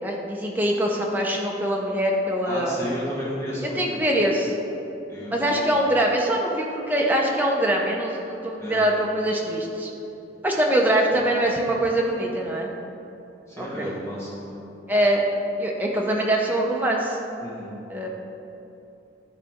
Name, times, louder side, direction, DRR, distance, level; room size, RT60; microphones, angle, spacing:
voice 1, 0.0-2.8 3.8-4.5 5.3-9.9 10.4-12.7 13.6-13.9 14.9-15.2 15.6-17.2 17.9-18.1, right 1 dB, 10° right, -1 dB, 0.7 m, -23 dB
voice 2, 2.4-4.0 5.1-5.8 8.6-8.8 11.1-11.2 13.5-14.6 17.4-17.8, equal, 15° left, -8 dB, 1.6 m, -33 dB
11.5 x 4.0 x 3.6 m, 2.8 s
head